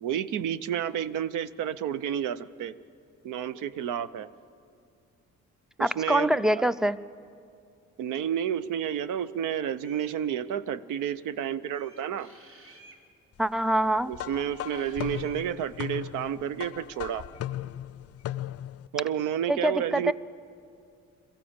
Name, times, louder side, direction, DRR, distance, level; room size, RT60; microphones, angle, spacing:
voice 1, 0.0-2.7 3.2-4.3 5.8-6.6 8.0-12.3 14.1-17.2 18.9-20.1, right 9 dB, 80° right, 16 dB, 0.7 m, -30 dB
voice 2, 5.8-7.0 13.4-14.1 19.5-20.1, right 1 dB, ahead, 16 dB, 0.4 m, -24 dB
sound 1, 9.8-10.2 11.7-13.0 14.6-15.5, right 2 dB, 45° right, 2.7 m, -53 dB
sound 2, 14.1-18.9, left 12 dB, 55° left, 0.5 m, -37 dB
22.5 x 15.0 x 8.7 m, 2.4 s
cardioid pair, 90°, 30 cm